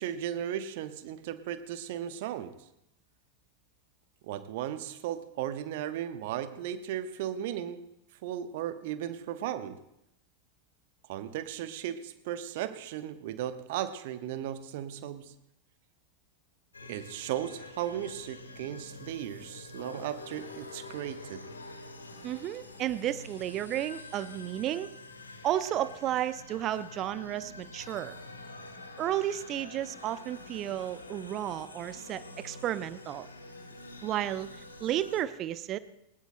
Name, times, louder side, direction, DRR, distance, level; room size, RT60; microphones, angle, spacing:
voice 1, 0.0-2.5 4.2-7.8 8.2-9.8 11.1-15.3 16.8-21.5, right 11 dB, 50° right, 12 dB, 1.0 m, -36 dB
sound 1, 16.7-35.2, left 2 dB, 75° left, 1.8 m, -47 dB
voice 2, 22.2-24.9 25.4-28.2 29.0-33.3 34.0-35.8, right 12 dB, 35° right, 16 dB, 0.6 m, -32 dB
21.5 x 19.5 x 2.2 m, 0.83 s
figure-of-eight pair, 90°, 0 cm